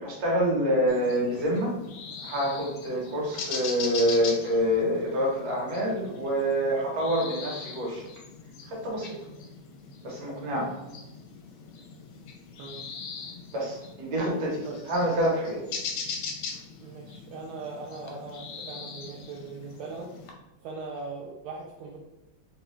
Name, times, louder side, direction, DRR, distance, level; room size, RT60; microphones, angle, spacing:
voice 1, 0.0-1.7 2.2-8.1 8.7-9.2 10.0-10.7 13.5-15.6, equal, 55° right, -3 dB, 1.4 m, -27 dB
sound 1, 0.9-20.3, left 5 dB, 80° left, 1.4 m, -40 dB
voice 2, 10.5-10.8 12.6-12.8 14.6-14.8 16.8-20.1 20.6-22.0, right 4 dB, 75° right, -3 dB, 1.3 m, -40 dB
3.8 x 2.3 x 3.0 m, 0.97 s
omnidirectional pair, 2.4 m